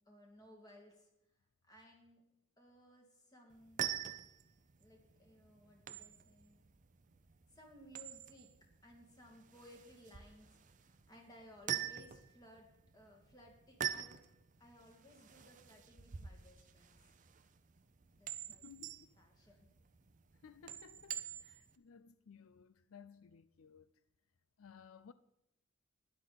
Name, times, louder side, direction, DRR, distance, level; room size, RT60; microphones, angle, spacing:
voice 1, 0.1-1.1 1.6-2.2 2.6-3.8 4.8-6.6 7.5-8.5 8.8-12.7 12.9-14.2 14.6-17.1 18.2-18.6 19.2-19.7, equal, 20° left, 2.1 m, -60 dB
sound 1, 3.5-21.8, right 10 dB, 40° right, 0.5 m, -46 dB
voice 2, 18.6-19.1 20.4-24.0 24.6-25.1, left 6 dB, 90° left, 0.5 m, -58 dB
12.0 x 10.0 x 4.1 m
head